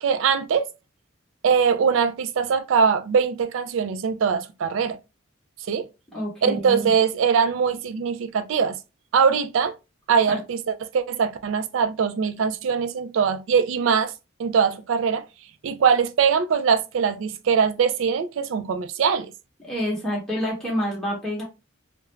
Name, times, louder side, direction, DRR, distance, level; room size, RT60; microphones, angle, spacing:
voice 1, 0.0-0.7 1.4-5.0 5.7-5.9 6.4-8.8 9.1-9.7 10.1-14.1 14.4-15.2 15.6-19.3, right 6 dB, 70° right, 0.3 m, -22 dB
voice 2, 6.1-6.9 10.3-10.4 19.6-21.4, equal, 5° left, 0.8 m, -28 dB
2.4 x 2.1 x 3.1 m
head